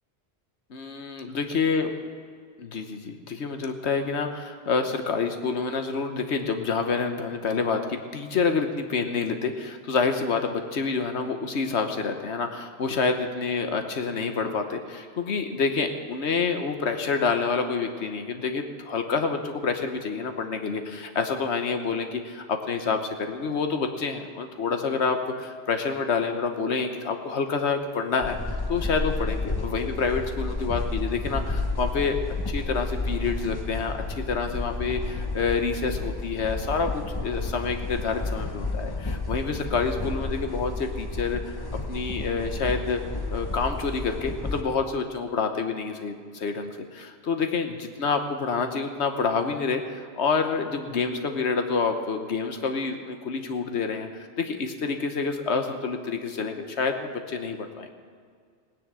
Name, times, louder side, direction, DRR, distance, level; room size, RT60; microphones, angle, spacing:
voice 1, 0.7-1.9 2.6-28.4 28.7-32.2 32.5-43.0 43.3-57.9, left 5 dB, 90° left, 6 dB, 1.3 m, -28 dB
sound 1, 28.2-44.6, left 3 dB, 25° left, 0.8 m, -31 dB
17.5 x 10.5 x 7.5 m, 2.1 s
omnidirectional pair, 1.1 m